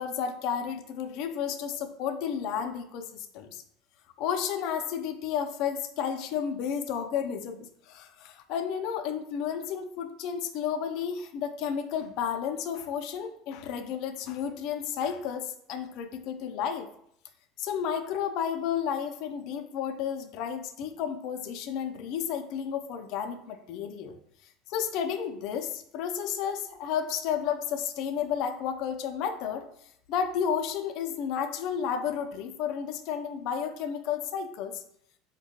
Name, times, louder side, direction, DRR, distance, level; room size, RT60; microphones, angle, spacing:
voice 1, 0.0-3.6 4.2-16.9 17.6-24.2 24.7-29.7 30.1-34.8, left 8 dB, 50° left, 6 dB, 0.3 m, -32 dB
3.6 x 2.2 x 2.7 m, 0.69 s
cardioid pair, 160°, 0 cm